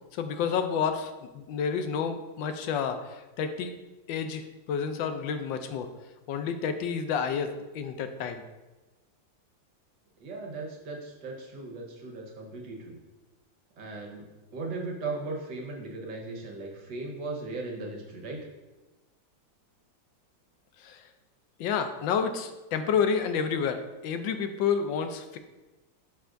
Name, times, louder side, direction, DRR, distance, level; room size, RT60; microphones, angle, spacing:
voice 1, 0.1-3.7 4.1-5.9 6.3-8.4 20.8-21.0 21.6-25.4, left 6 dB, 80° left, 8 dB, 1.3 m, -30 dB
voice 2, 10.2-13.0 13.8-14.2 14.5-18.5, right 3 dB, 70° right, -1 dB, 2.0 m, -37 dB
11.0 x 5.6 x 2.6 m, 1.1 s
omnidirectional pair, 2.0 m